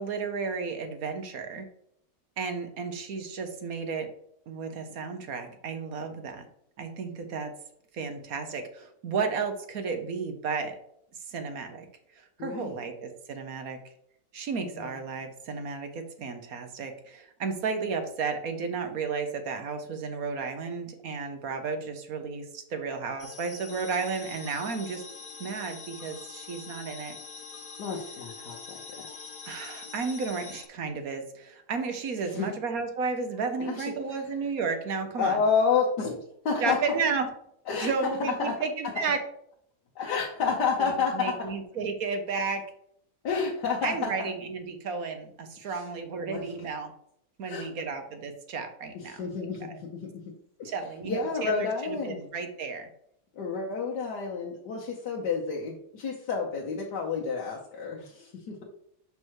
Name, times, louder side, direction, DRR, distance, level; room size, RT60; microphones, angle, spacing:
voice 1, 0.0-1.7 2.4-4.1 4.5-6.5 6.8-7.5 7.9-10.7 11.3-11.9 12.1-13.8 14.3-25.0 25.4-27.2 29.4-35.4 36.6-37.3 37.7-39.2 40.8-42.6 43.8-46.9 47.4-49.2 50.6-52.9, right 5 dB, 60° right, 6 dB, 1.3 m, -33 dB
voice 2, 12.4-12.8 14.6-14.9 27.8-29.1 32.2-32.5 33.6-34.2 35.2-37.0 37.7-37.9 38.2-38.6 40.0-41.5 43.2-44.3 45.6-45.8 46.2-46.4 47.4-47.7 48.9-50.0 50.6-50.7 51.0-52.2 53.3-58.6, left 5 dB, 75° left, -2 dB, 1.6 m, -30 dB
sound 1, 23.2-30.7, left 5 dB, 45° left, 0.7 m, -44 dB
6.0 x 5.4 x 4.7 m, 0.70 s
omnidirectional pair, 1.8 m